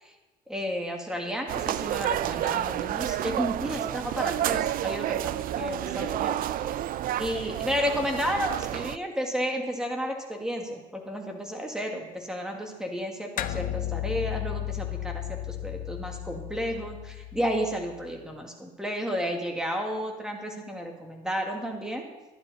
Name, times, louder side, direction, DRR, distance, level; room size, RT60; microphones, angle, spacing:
voice 1, 0.5-6.8 7.2-22.0, equal, 5° right, 2 dB, 1.7 m, -32 dB
sound 1, 1.5-9.0, right 12 dB, 55° right, 0.4 m, -30 dB
sound 2, 13.4-18.1, left 13 dB, 55° left, 0.6 m, -34 dB
12.0 x 10.5 x 4.0 m, 1.1 s
cardioid pair, 110°, 17 cm